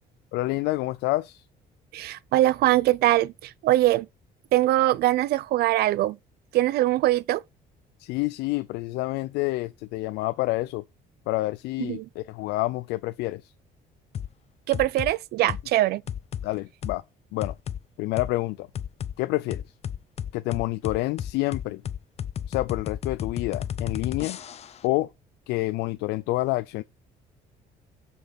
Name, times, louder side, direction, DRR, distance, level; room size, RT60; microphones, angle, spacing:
voice 1, 0.3-1.4 8.0-10.8 11.3-13.5 16.4-17.0 17.3-17.6 18.0-18.7 19.2-19.6 20.3-21.8 22.5-24.4 24.8-25.1 25.5-26.8, left 19 dB, 90° left, 0.4 m, -28 dB
voice 2, 1.9-4.1 4.5-6.2 6.5-7.4 11.8-12.0 14.7-16.0, right 15 dB, 70° right, 0.4 m, -22 dB
sound 1, 14.1-14.3 14.7-15.1 15.5-15.7 16.1-16.5 16.8-17.0 17.4-17.8 18.2-18.3 18.7-19.1 19.5-24.8, left 9 dB, 40° left, 0.5 m, -33 dB
6.3 x 5.4 x 4.0 m
cardioid pair, 110°, 17 cm